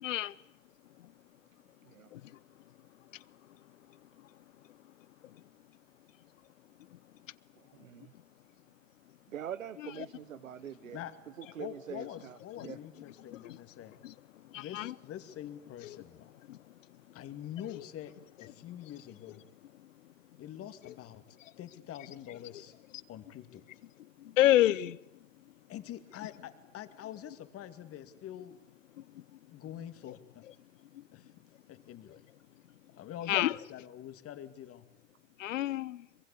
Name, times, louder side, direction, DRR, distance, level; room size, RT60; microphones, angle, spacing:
voice 1, 0.0-0.3 9.8-10.1 12.6-12.8 13.4-13.6 14.5-14.9 15.8-16.0 17.7-17.8 20.8-20.9 24.4-25.0 33.3-33.6 35.4-36.0, left 14 dB, 75° left, 1.0 m, -28 dB
voice 2, 7.6-8.1 9.3-11.0 11.4-12.8, right 10 dB, 85° right, 1.0 m, -44 dB
voice 3, 11.6-13.9 14.5-16.3 17.1-18.1 18.4-19.4 20.4-21.2 21.6-22.7 23.1-23.6 25.7-28.6 29.5-30.4 31.1-31.3 31.7-32.2 32.9-34.8, left 11 dB, 35° left, 2.5 m, -45 dB
23.5 x 22.0 x 8.6 m
hypercardioid pair, 100°, 39 cm